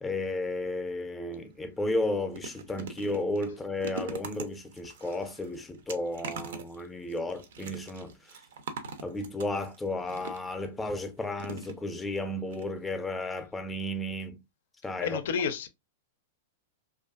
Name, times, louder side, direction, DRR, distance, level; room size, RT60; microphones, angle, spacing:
voice 1, 0.0-8.1 9.0-14.4 14.8-15.2, left 2 dB, 10° left, 0.5 m, -33 dB
sound 1, 1.3-1.5 1.9-10.7 11.4-12.2 12.5-12.6 12.9-13.0, right 4 dB, 75° right, 0.5 m, -43 dB
voice 2, 15.0-15.7, left 6 dB, 70° left, 0.4 m, -30 dB
2.6 x 2.3 x 2.3 m
hypercardioid pair, 120°, 0 cm